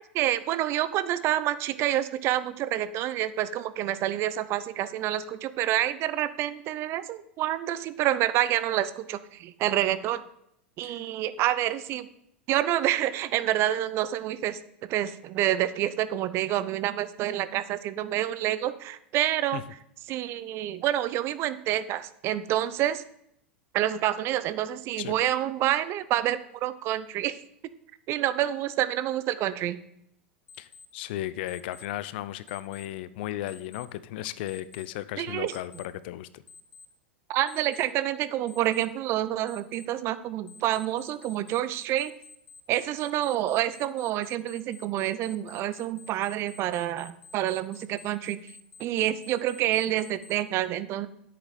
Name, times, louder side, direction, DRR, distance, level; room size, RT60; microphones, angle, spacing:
voice 1, 0.1-10.2 10.8-12.1 12.5-14.6 14.9-19.6 20.1-23.0 23.7-27.4 28.1-29.8 35.2-35.5 37.3-42.1 42.7-48.5 48.8-51.1, right 13 dB, 45° right, 15 dB, 0.7 m, -28 dB
Alarm, 30.5-30.9 31.5-31.9 32.5-32.9 33.5-33.9 34.5-34.9 35.5-35.9 36.5-36.9 37.5-37.9 38.5-38.9 39.5-39.9 40.5-50.4, left 5 dB, 85° left, 0.9 m, -50 dB
voice 2, 30.6-36.4, left 14 dB, 60° left, 16 dB, 0.6 m, -35 dB
9.7 x 8.4 x 4.3 m, 0.75 s
hypercardioid pair, 95°, 6 cm